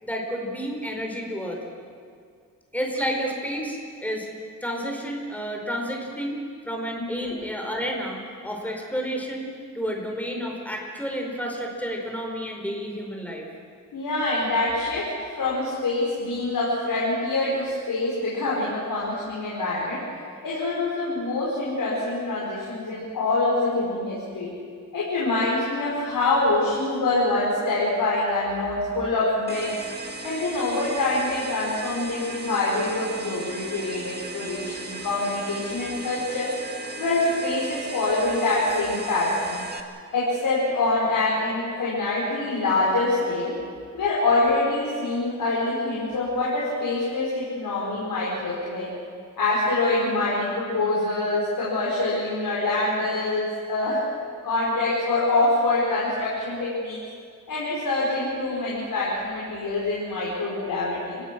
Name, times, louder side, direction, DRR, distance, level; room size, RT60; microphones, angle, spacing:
voice 1, 0.0-1.6 2.7-4.3 4.6-6.4 6.6-13.4, equal, 5° left, 0 dB, 5.0 m, -30 dB
voice 2, 7.0-7.3 13.9-20.0 20.4-24.5 24.9-29.7 30.2-36.5 37.0-39.6 40.1-43.6 43.9-48.9 49.4-54.0 54.4-57.0 57.5-61.2, left 2 dB, 85° left, -6 dB, 5.2 m, -25 dB
sound 1, 29.5-39.8, right 3 dB, 30° right, 2.2 m, -37 dB
30.0 x 17.5 x 6.3 m, 2.2 s
wide cardioid pair, 90°, 33 cm